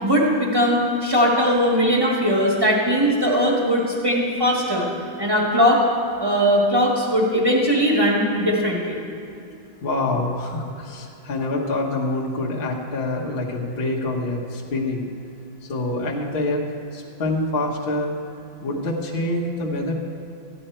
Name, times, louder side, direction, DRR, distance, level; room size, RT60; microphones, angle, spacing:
voice 1, 0.0-4.9 5.2-5.8 6.2-9.0, equal, 15° right, -3 dB, 1.4 m, -19 dB
voice 2, 9.8-15.1 15.7-16.6 16.9-18.1 18.6-19.9, left 2 dB, 35° left, -3 dB, 1.2 m, -26 dB
14.0 x 10.0 x 4.4 m, 2.6 s
omnidirectional pair, 2.2 m